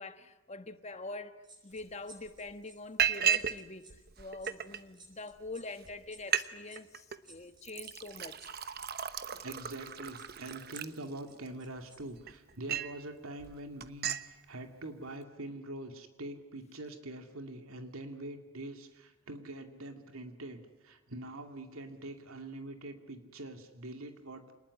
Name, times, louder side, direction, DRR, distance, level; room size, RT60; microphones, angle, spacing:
voice 1, 0.0-1.3 1.6-8.5, left 2 dB, 30° left, 1.4 m, -45 dB
sound 1, 1.4-12.0 12.3-12.5, right 2 dB, 20° right, 6.3 m, -58 dB
Liquid, 1.8-1.9 2.3-2.5 3.0-3.6 3.9-4.8 5.5-5.6 5.8-5.9 6.2-6.5 6.8-7.2 7.6-11.5 12.0-13.0 13.4-13.6 13.8-14.3, right 8 dB, 50° right, 1.0 m, -34 dB
voice 2, 9.4-24.5, right 1 dB, 90° right, 2.4 m, -44 dB
28.0 x 20.0 x 9.7 m
head